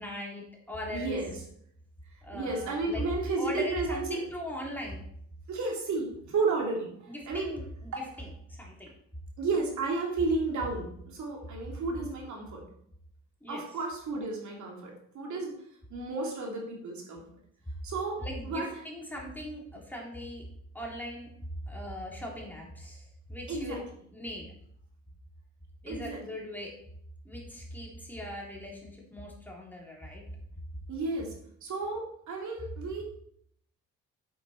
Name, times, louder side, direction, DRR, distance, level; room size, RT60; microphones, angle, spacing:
voice 1, 0.0-1.2 2.2-3.0 3.4-5.0 7.1-8.9 13.4-13.6 18.2-20.4 20.7-21.3 21.7-23.9 24.1-24.5 25.8-26.7 27.3-30.2, left 1 dB, 5° left, -2 dB, 3.5 m, -39 dB
voice 2, 0.9-1.3 2.3-4.2 5.5-6.9 7.3-7.5 7.9-8.0 9.4-12.6 13.5-15.5 15.9-17.2 17.8-18.2 18.4-18.7 23.5-23.8 25.9-26.2 30.9-31.3 31.6-33.0, right 3 dB, 70° right, -1 dB, 3.0 m, -32 dB
8.9 x 7.8 x 4.5 m, 0.68 s
cardioid pair, 90°, 30 cm